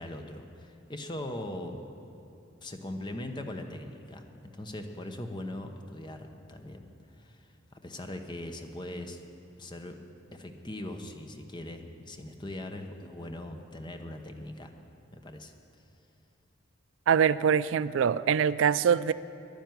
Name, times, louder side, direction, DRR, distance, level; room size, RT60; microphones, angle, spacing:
voice 1, 0.0-1.8 2.6-6.9 7.2-9.2 9.6-10.0 10.3-14.7 15.1-15.5, left 1 dB, 25° left, 5 dB, 0.9 m, -40 dB
voice 2, 17.1-19.1, right 7 dB, 70° right, 17 dB, 0.3 m, -24 dB
11.0 x 10.5 x 9.3 m, 2.9 s
head